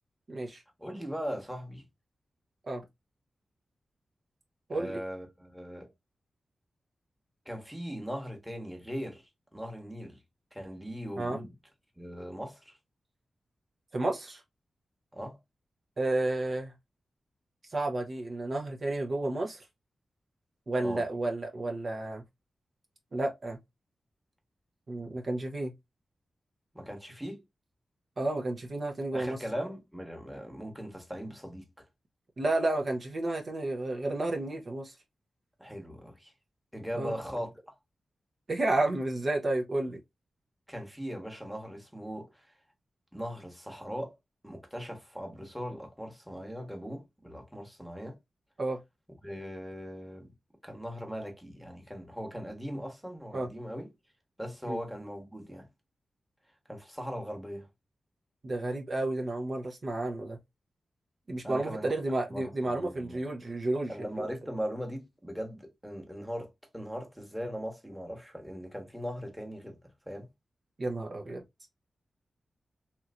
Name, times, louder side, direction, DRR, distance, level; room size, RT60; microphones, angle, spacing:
voice 1, 0.3-0.6 2.7-2.8 4.7-5.0 11.2-11.4 13.9-14.4 16.0-16.7 17.7-19.6 20.7-22.2 23.1-23.6 24.9-25.7 28.2-29.4 32.4-34.9 37.0-37.1 38.5-40.0 48.6-48.8 53.3-53.5 54.7-54.8 58.4-60.4 61.3-63.9 64.2-64.3 70.8-71.4, right 2 dB, 50° right, 0.8 m, -31 dB
voice 2, 0.8-1.8 4.7-5.9 7.4-10.2 10.5-11.5 12.0-12.8 15.1-15.4 20.8-21.0 26.7-27.4 29.1-31.7 35.6-36.3 36.7-37.5 40.7-42.4 43.1-44.2 44.4-48.2 49.2-50.3 50.6-53.9 54.4-55.7 56.7-57.7 61.4-61.9 62.3-63.2 63.9-69.8 70.1-70.3, equal, ahead, 1.1 m, -39 dB
3.0 x 2.9 x 2.4 m
cardioid pair, 60°, 0 cm